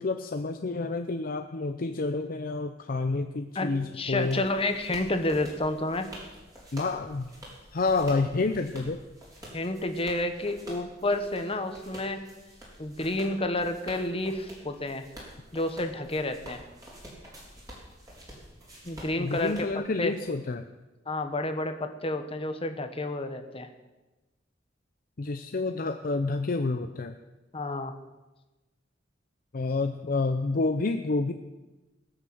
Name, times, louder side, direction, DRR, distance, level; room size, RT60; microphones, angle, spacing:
voice 1, 0.0-4.4 6.7-7.3 7.7-9.0 19.2-20.7 25.2-27.1 29.5-31.3, left 3 dB, 50° left, 7 dB, 0.6 m, -29 dB
voice 2, 3.5-6.1 9.5-12.2 12.8-15.0 15.5-16.6 18.8-19.7 20.0-20.1 21.1-23.7 27.5-27.9, left 2 dB, 30° left, 7 dB, 1.2 m, -30 dB
sound 1, 3.7-20.3, equal, 20° right, 4.0 m, -48 dB
20.0 x 6.7 x 7.9 m, 1.1 s
head